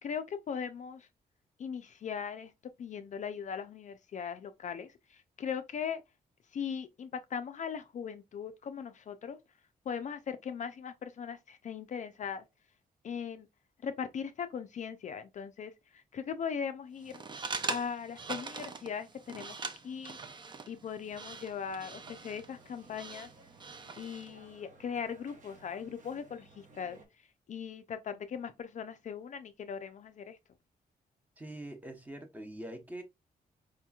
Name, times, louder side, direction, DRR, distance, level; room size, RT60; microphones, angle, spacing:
voice 1, 0.0-1.1 1.6-2.5 2.8-6.0 6.5-9.4 9.9-12.4 13.0-13.5 13.8-17.2 17.7-20.2 20.7-23.3 24.0-30.4, left 7 dB, 50° left, 0.4 m, -39 dB
sound 1, 17.0-24.4, right 4 dB, 30° right, 0.4 m, -42 dB
sound 2, 21.1-27.1, right 3 dB, 55° right, 0.9 m, -58 dB
voice 2, 31.4-33.0, right 1 dB, 10° right, 0.8 m, -43 dB
4.8 x 2.9 x 2.3 m
wide cardioid pair, 140°, 16 cm